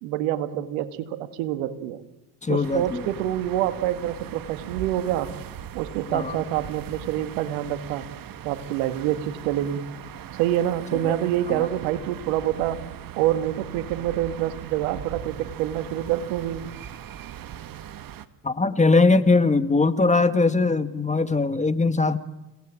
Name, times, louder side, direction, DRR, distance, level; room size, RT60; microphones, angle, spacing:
voice 1, 0.0-2.0 2.5-5.3 5.7-8.1 8.4-9.8 10.3-12.8 13.2-16.7, right 12 dB, 75° right, 10 dB, 2.1 m, -26 dB
voice 2, 2.4-3.1 6.1-6.4 11.0-11.1 11.6-11.7 18.4-22.2, left 3 dB, 15° left, 10 dB, 1.9 m, -21 dB
sound 1, 2.6-18.3, right 9 dB, 50° right, 1.7 m, -40 dB
30.0 x 18.0 x 9.0 m, 1.0 s
hypercardioid pair, 70°, 45 cm